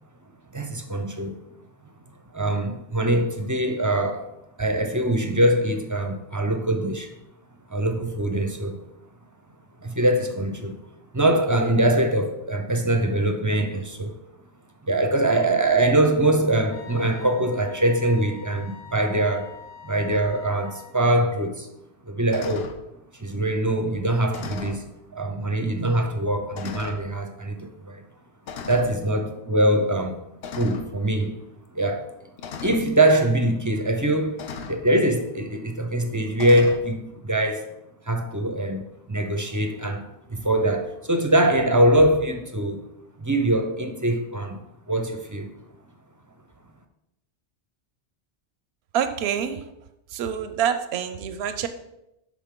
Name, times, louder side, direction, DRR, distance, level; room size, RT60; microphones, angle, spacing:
voice 1, 0.5-1.4 2.3-4.3 4.6-7.1 7.7-8.8 9.8-10.7 11.1-14.2 14.8-19.5 19.8-21.7 22.1-22.7 23.2-24.8 25.1-28.0 28.7-30.2 30.6-31.4 31.7-32.1 32.6-37.7 38.1-38.8 39.1-42.8 43.2-45.5, right 1 dB, 20° right, 0.5 m, -23 dB
Wind instrument woodwind instrument, 16.7-21.0, left 7 dB, 50° left, 0.9 m, -45 dB
sound 1, 20.1-20.3 22.3-22.8 24.3-24.9 25.7-25.8 26.5-27.1 28.5-29.0 30.4-30.9 32.4-32.9 34.4-34.8 36.4-36.8, left 6 dB, 70° left, 0.9 m, -36 dB
voice 2, 48.9-49.6 50.1-51.7, right 8 dB, 75° right, 0.9 m, -26 dB
11.0 x 4.1 x 3.7 m
omnidirectional pair, 1.1 m